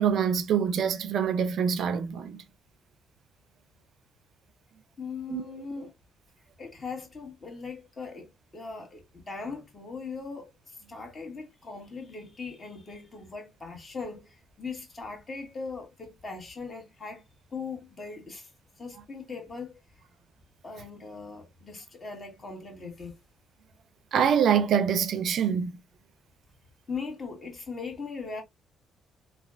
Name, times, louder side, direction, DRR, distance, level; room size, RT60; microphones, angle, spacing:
voice 1, 0.0-2.4 5.3-5.4 24.1-25.7, right 8 dB, 65° right, 0.4 m, -25 dB
voice 2, 5.0-5.9 6.6-17.2 17.5-18.5 18.8-19.8 20.6-23.2 26.9-28.4, left 4 dB, 35° left, 1.6 m, -39 dB
3.2 x 2.2 x 2.4 m
cardioid pair, 90°, 0 cm